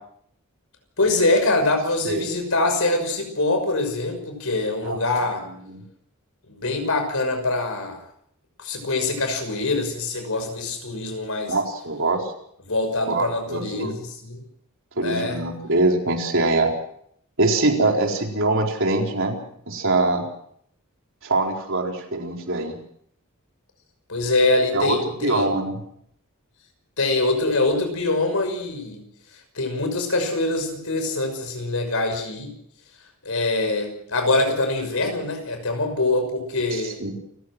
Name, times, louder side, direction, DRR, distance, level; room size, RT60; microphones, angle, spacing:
voice 1, 1.0-5.4 6.5-8.0 8.6-11.6 12.7-14.4 15.0-15.4 24.1-25.5 27.0-29.0 29.5-32.5 33.2-37.0, left 2 dB, 65° left, 7 dB, 6.1 m, -24 dB
voice 2, 11.5-12.3 13.1-14.0 15.0-16.7 17.4-19.4 19.7-20.3 21.2-22.7 24.7-25.8 37.0-37.1, right 2 dB, 60° right, 1 dB, 4.6 m, -23 dB
29.5 x 15.5 x 6.2 m, 0.67 s
head